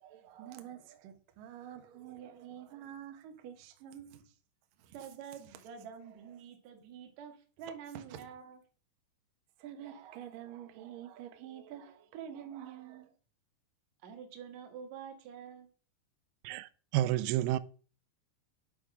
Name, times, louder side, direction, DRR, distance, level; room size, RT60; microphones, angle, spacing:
voice 1, 0.0-4.2 4.8-5.0 7.9-8.3 9.6-13.1, right 10 dB, 70° right, 2.2 m, -47 dB
voice 2, 4.9-8.6 14.0-15.7, right 7 dB, 50° right, 2.3 m, -47 dB
voice 3, 16.5-17.6, right 14 dB, 90° right, 3.4 m, -30 dB
11.5 x 5.3 x 6.2 m
omnidirectional pair, 6.0 m